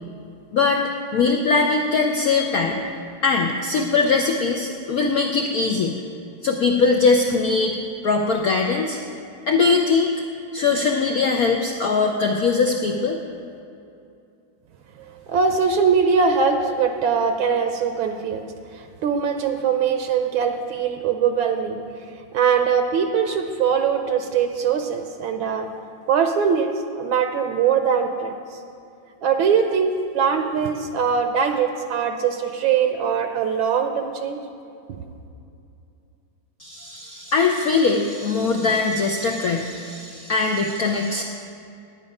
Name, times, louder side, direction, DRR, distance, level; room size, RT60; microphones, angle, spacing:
voice 1, 0.5-2.8 3.2-6.0 6.4-7.8 8.0-9.0 9.5-10.1 10.5-13.2 36.6-41.2, left 4 dB, 70° left, 2 dB, 0.8 m, -21 dB
voice 2, 15.0-18.4 18.7-21.8 22.3-25.7 26.1-26.7 27.0-28.3 29.2-34.4, right 6 dB, 75° right, 6 dB, 1.4 m, -21 dB
10.5 x 9.5 x 5.4 m, 2.6 s
omnidirectional pair, 2.3 m